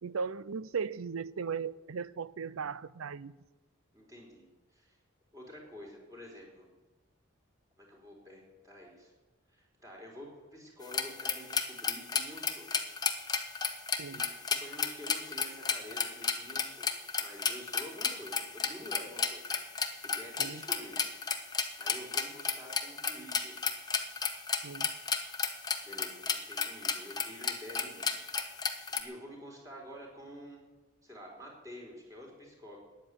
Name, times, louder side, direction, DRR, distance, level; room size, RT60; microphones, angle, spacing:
voice 1, 0.0-3.4 14.0-14.2 20.4-20.6 24.6-24.9, right 5 dB, 85° right, 0.5 m, -37 dB
voice 2, 3.9-4.4 4.7-5.0 5.3-6.7 7.8-9.1 9.5-12.7 14.1-16.9 17.2-19.5 20.1-21.0 21.8-23.5 25.8-28.1 28.9-30.6 31.0-32.8, equal, 15° right, 4.0 m, -49 dB
sound 1, 10.9-29.0, left 5 dB, 20° left, 1.1 m, -33 dB
13.5 x 9.2 x 9.8 m
head